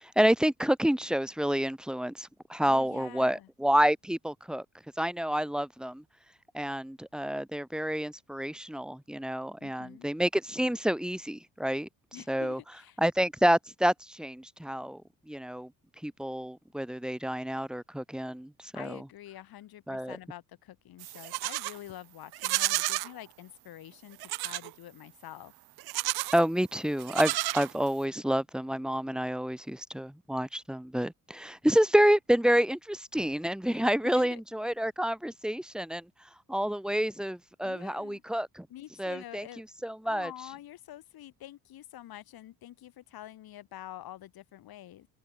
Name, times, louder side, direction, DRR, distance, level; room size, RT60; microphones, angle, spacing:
voice 1, 0.0-4.6 5.0-6.0 6.5-11.9 12.3-12.6 13.0-15.0 15.3-15.7 16.0-18.5 18.8-19.0 19.9-20.2 26.3-36.0 36.5-38.7 39.0-39.5 39.8-40.3, equal, ahead, 0.7 m, -28 dB
voice 2, 2.6-3.5 9.6-10.1 12.1-13.0 18.7-25.5 33.7-34.4 37.6-38.2 38.7-39.6 40.0-45.1, left 13 dB, 70° left, 2.8 m, -47 dB
Livestock farm animals working animals, 21.0-21.8 22.3-23.1 24.2-24.7 25.8-26.4 27.0-28.0, right 20 dB, 85° right, 0.8 m, -31 dB
cardioid pair, 80°, 37 cm